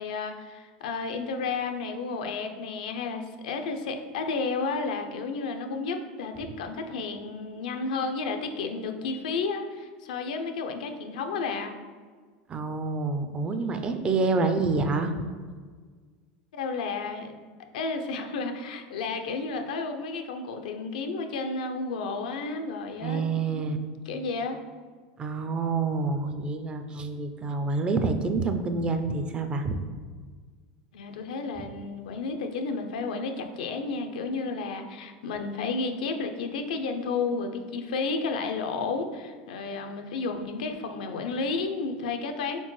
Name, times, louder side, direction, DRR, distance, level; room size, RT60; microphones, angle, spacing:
voice 1, 0.0-11.7 16.5-17.3 17.7-23.2 23.5-23.6 24.1-24.6 30.9-42.6, left 4 dB, 90° left, 5 dB, 0.5 m, -32 dB
voice 2, 12.5-15.2 23.0-23.8 25.2-29.8, right 3 dB, 25° right, 7 dB, 0.4 m, -27 dB
4.3 x 3.7 x 3.1 m, 1.5 s
supercardioid pair, 120°, 4 cm